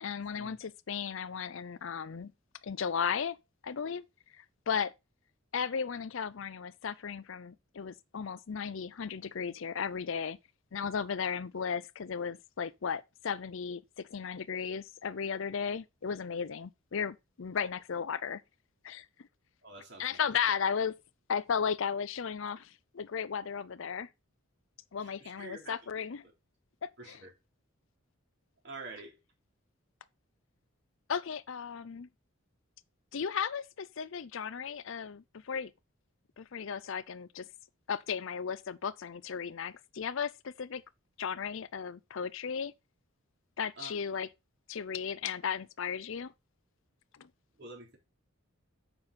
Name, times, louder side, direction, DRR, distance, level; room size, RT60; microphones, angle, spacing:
voice 1, 0.0-2.3 2.6-3.4 3.6-4.0 4.4-4.9 5.5-10.4 10.7-18.4 18.8-19.3 20.0-21.0 21.3-24.1 24.9-26.2 26.8-27.2 31.1-32.1 33.1-35.7 36.4-37.5 37.9-40.8 41.2-42.7 43.6-44.3 44.7-46.3 47.2-47.3, left 6 dB, 65° left, 0.5 m, -35 dB
voice 2, 19.6-20.3 25.0-25.8 27.0-27.3 28.6-29.2 43.8-43.9 47.6-48.0, right 2 dB, 50° right, 3.7 m, -47 dB
8.7 x 6.0 x 4.2 m
head